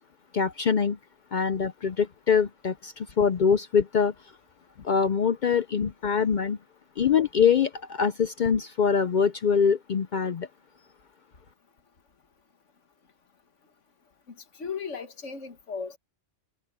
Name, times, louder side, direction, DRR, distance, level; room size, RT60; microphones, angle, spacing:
voice 1, 0.3-1.0 1.3-4.1 4.8-6.6 7.0-10.5, left 6 dB, 55° left, 0.5 m, -24 dB
voice 2, 14.6-16.0, left 5 dB, 75° left, 1.8 m, -35 dB
omnidirectional pair, 1.3 m